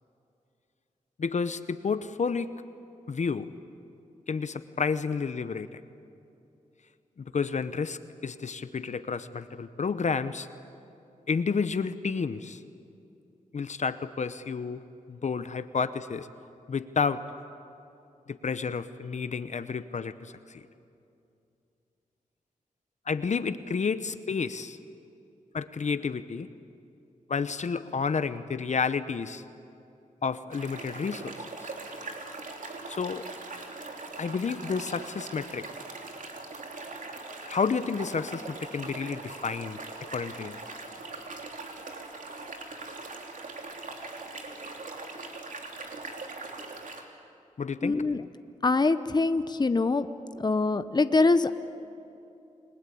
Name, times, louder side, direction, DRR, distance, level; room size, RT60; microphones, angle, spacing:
voice 1, 1.2-2.5 3.1-3.5 4.3-5.8 7.2-10.5 11.3-12.6 13.5-14.8 15.1-16.3 16.7-17.2 18.3-20.6 23.1-24.8 25.5-26.5 27.3-29.4 30.2-31.7 32.9-33.2 34.2-35.7 37.5-39.8 40.1-40.6 47.6-48.0, left 5 dB, 60° left, 12 dB, 0.9 m, -30 dB
sound 1, 30.5-47.0, right 3 dB, 70° right, 3.1 m, -41 dB
voice 2, 47.8-48.2 48.6-50.1 50.4-51.5, left 3 dB, 30° left, 11 dB, 0.9 m, -24 dB
29.0 x 20.5 x 8.5 m, 2.7 s
cardioid pair, 70°, 14 cm